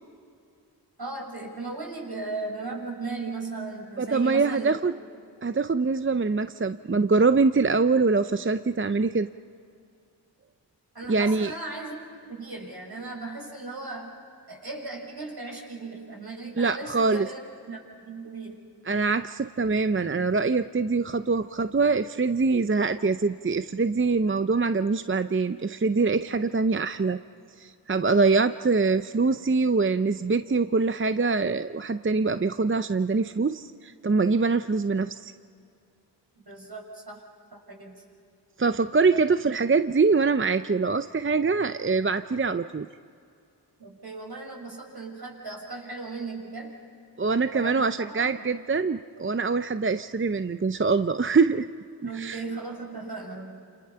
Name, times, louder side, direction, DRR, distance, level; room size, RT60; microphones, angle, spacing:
voice 1, 1.0-4.8 10.9-14.1 14.5-17.4 17.7-18.6 36.4-37.2 37.5-38.0 39.1-39.2 39.4-39.5 43.8-46.8 47.5-48.3 52.0-53.6, right 3 dB, 65° right, 0 dB, 6.8 m, -37 dB
voice 2, 4.0-4.9 5.4-9.3 11.1-11.5 16.6-17.3 18.9-27.2 27.6-35.3 38.6-42.9 47.2-51.7 52.0-52.4, right 4 dB, 30° right, 10 dB, 0.6 m, -24 dB
28.5 x 28.5 x 5.7 m, 2.4 s
wide cardioid pair, 50°, 41 cm